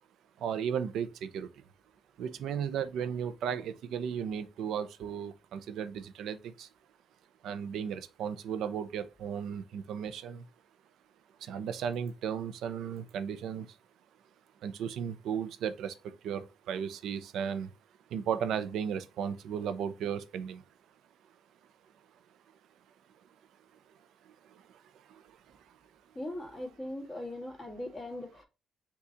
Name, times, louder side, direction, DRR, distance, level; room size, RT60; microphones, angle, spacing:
voice 1, 0.4-1.5 2.2-6.7 7.4-10.4 11.4-13.7 14.6-17.7 18.1-20.6 25.1-25.2, right 8 dB, 80° right, 0.5 m, -35 dB
voice 2, 26.2-28.4, left 1 dB, 30° left, 2.0 m, -40 dB
5.7 x 2.3 x 3.8 m
cardioid pair, 90°, 0 cm